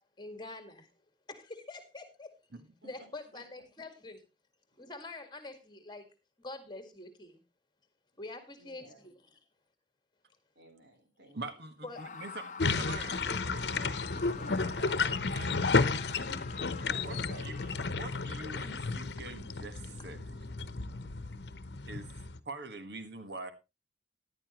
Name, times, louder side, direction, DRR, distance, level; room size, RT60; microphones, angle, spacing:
voice 1, 0.2-0.9 1.3-2.3 2.8-4.3 4.8-7.4 8.2-9.4 11.8-12.2, left 2 dB, 25° left, 1.9 m, -46 dB
voice 2, 2.8-3.4 8.6-9.1 10.6-11.4 14.3-14.6 16.8-18.3 20.9-21.3, right 1 dB, 90° right, 3.7 m, -54 dB
voice 3, 11.3-14.0 14.6-16.0 17.0-17.6 17.9-20.2 21.8-22.1 22.4-23.5, right 3 dB, 70° right, 1.5 m, -44 dB
Screaming, 11.9-18.2, left 5 dB, 45° left, 0.7 m, -46 dB
sound 1, 12.6-22.4, left 4 dB, 75° left, 0.9 m, -32 dB
14.0 x 11.0 x 3.0 m
head